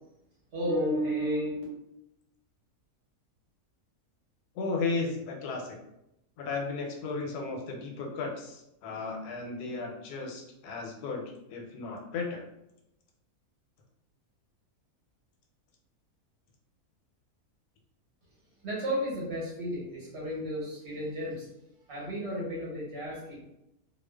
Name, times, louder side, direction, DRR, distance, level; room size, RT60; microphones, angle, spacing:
voice 1, 0.5-1.6 18.6-21.5 21.9-23.5, equal, 55° right, -6 dB, 1.0 m, -32 dB
voice 2, 4.5-5.8 6.4-12.4, left 4 dB, 90° left, 1 dB, 1.1 m, -35 dB
2.4 x 2.3 x 2.2 m, 0.84 s
omnidirectional pair, 1.6 m